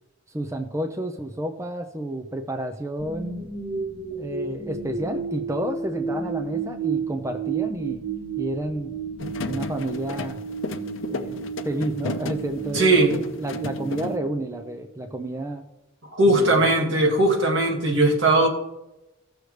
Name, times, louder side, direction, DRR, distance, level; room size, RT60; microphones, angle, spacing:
voice 1, 0.3-3.5 4.1-8.0 8.4-8.9 9.4-10.4 11.1-15.6 16.3-16.6, right 1 dB, 15° right, 6 dB, 0.5 m, -30 dB
sound 1, 3.0-15.1, right 5 dB, 40° right, 1.8 m, -32 dB
sound 2, 9.2-14.2, left 4 dB, 70° left, 0.6 m, -34 dB
voice 2, 12.7-13.2 16.1-18.5, right 2 dB, 70° right, 1 dB, 2.0 m, -19 dB
16.0 x 6.5 x 3.3 m, 0.94 s
head